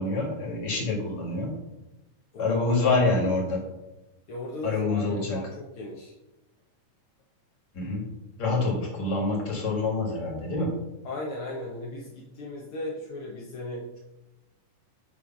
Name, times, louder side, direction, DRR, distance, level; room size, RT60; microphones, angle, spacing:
voice 1, 0.0-1.5 2.4-3.6 4.6-5.4 7.7-8.1 8.4-10.7, left 3 dB, 35° left, -2 dB, 2.1 m, -26 dB
voice 2, 2.3-2.6 4.3-6.1 11.0-14.0, left 1 dB, 60° left, -4 dB, 1.4 m, -37 dB
9.4 x 3.3 x 5.8 m, 1.0 s
omnidirectional pair, 3.7 m